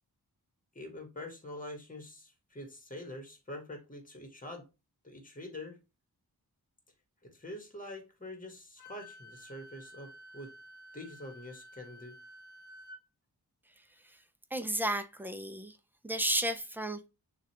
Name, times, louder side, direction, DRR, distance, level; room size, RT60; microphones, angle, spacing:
voice 1, 0.7-4.7 5.0-5.8 7.2-10.5 10.9-12.2, left 1 dB, 20° left, 1.4 m, -45 dB
Wind instrument woodwind instrument, 8.8-13.0, equal, 75° left, 0.8 m, -52 dB
voice 2, 14.5-15.8 16.0-17.1, right 1 dB, 5° right, 0.5 m, -33 dB
6.5 x 2.5 x 2.8 m
wide cardioid pair, 105°, 39 cm